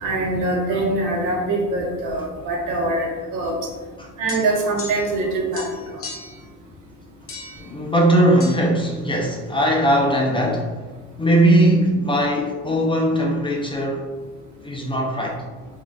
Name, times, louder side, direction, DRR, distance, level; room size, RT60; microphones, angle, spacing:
voice 1, 0.0-3.1 3.3-3.6 4.2-5.6, right 2 dB, 70° right, -1 dB, 1.0 m, -23 dB
sound 1, 4.3-5.3 5.5-6.4 7.3-7.7 8.4-8.6, left 3 dB, 45° left, 0.8 m, -37 dB
voice 2, 7.6-10.7 11.2-14.1 14.6-15.4, right 1 dB, 15° left, 0 dB, 0.4 m, -19 dB
3.7 x 2.5 x 2.3 m, 1.4 s
supercardioid pair, 95°, 32 cm